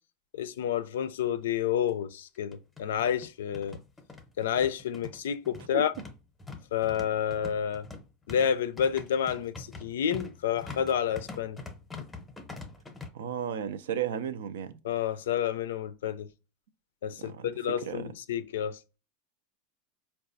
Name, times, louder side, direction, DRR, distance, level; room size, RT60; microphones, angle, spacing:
voice 1, 0.3-3.8 4.4-5.9 6.7-7.9 8.3-11.6 14.8-16.3 17.0-18.8, left 9 dB, 90° left, 0.3 m, -29 dB
sound 1, 1.0-1.1 1.4-1.5 2.3-13.1, left 3 dB, 10° left, 0.7 m, -44 dB
voice 2, 13.1-14.8 17.2-17.5 17.8-18.1, right 9 dB, 90° right, 0.4 m, -34 dB
4.7 x 2.3 x 2.6 m
supercardioid pair, 125°, 0 cm